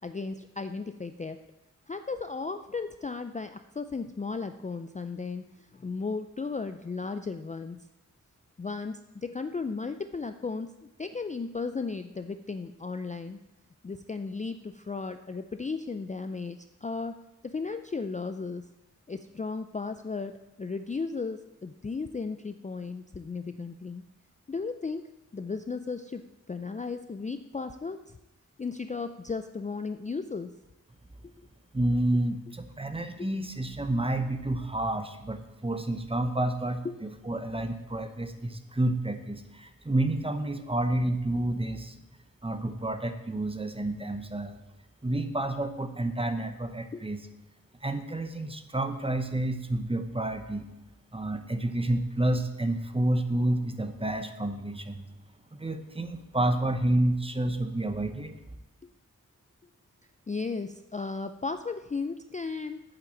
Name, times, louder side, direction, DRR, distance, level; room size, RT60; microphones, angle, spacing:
voice 1, 0.0-1.4 1.9-7.9 8.6-13.4 13.8-17.2 17.4-18.7 19.1-24.0 24.5-25.1 25.3-26.2 26.5-28.2 28.6-30.5 31.2-31.3 36.8-36.9 46.9-47.0 60.3-62.8, left 4 dB, 25° left, 9 dB, 0.4 m, -35 dB
voice 2, 31.7-41.9 42.4-44.6 45.0-47.2 47.8-50.7 51.1-55.1 55.5-58.3, right 1 dB, 20° right, 8 dB, 0.8 m, -29 dB
8.6 x 5.9 x 7.7 m, 0.96 s
wide cardioid pair, 95°, 32 cm